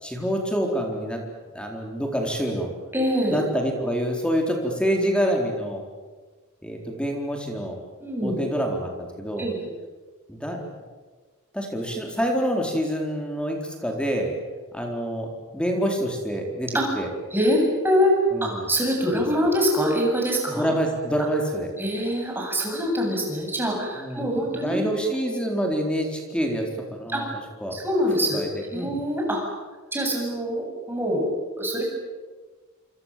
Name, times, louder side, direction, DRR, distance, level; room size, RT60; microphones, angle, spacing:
voice 1, 0.0-1.2 1.5-2.7 3.3-5.8 6.6-7.7 8.2-9.5 10.3-10.6 11.5-14.3 14.7-15.3 15.5-16.7 17.0-17.1 18.3-18.7 19.1-19.5 20.6-21.7 24.0-27.2 27.6-27.8 28.3-28.9, equal, 5° left, 2 dB, 4.2 m, -27 dB
voice 2, 2.9-3.4 8.0-8.4 9.4-9.7 16.7-16.9 17.3-20.7 21.8-24.8 27.1-27.2 27.7-28.4 28.7-29.4 29.9-31.3 31.6-31.8, equal, 10° right, -1 dB, 7.9 m, -24 dB
27.5 x 26.5 x 7.7 m, 1.4 s
head